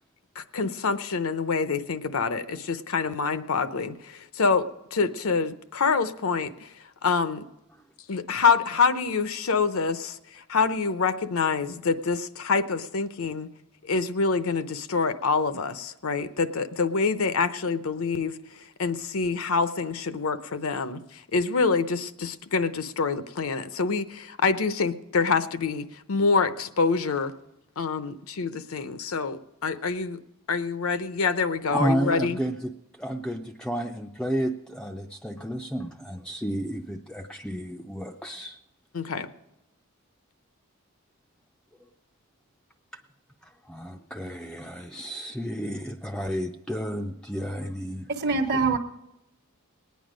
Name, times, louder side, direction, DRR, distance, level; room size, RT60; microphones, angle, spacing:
voice 1, 0.4-6.7 7.0-7.4 8.1-13.5 13.8-27.3 27.8-30.2 30.5-32.4 38.9-39.3, left 4 dB, 70° left, 12 dB, 0.7 m, -26 dB
voice 2, 31.7-38.6 43.4-48.1, equal, 5° left, 3 dB, 0.4 m, -31 dB
voice 3, 48.1-48.8, right 4 dB, 50° right, 7 dB, 1.1 m, -24 dB
19.5 x 9.3 x 5.1 m, 0.91 s
head